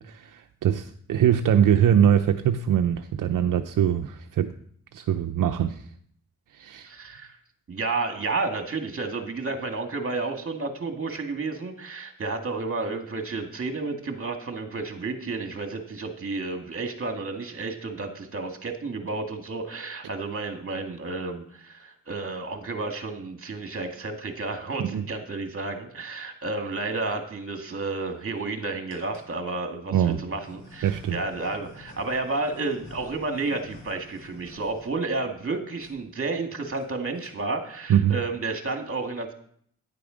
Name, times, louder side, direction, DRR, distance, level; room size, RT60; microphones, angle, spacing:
voice 1, 0.1-4.5 4.9-5.8 6.6-6.9 24.8-25.0 29.9-30.2 30.8-31.2 37.9-38.1, right 9 dB, 75° right, 7 dB, 0.6 m, -22 dB
voice 2, 6.8-7.4 7.7-39.3, right 3 dB, 45° right, 5 dB, 2.0 m, -31 dB
sound 1, 27.0-27.2 27.9-28.4 28.9-29.3 30.1-35.5 35.8-36.0 36.3-36.4 36.6-36.8 37.1-37.6, left 1 dB, 40° left, 5.3 m, -49 dB
10.0 x 6.7 x 5.1 m, 0.62 s
cardioid pair, 55°, 32 cm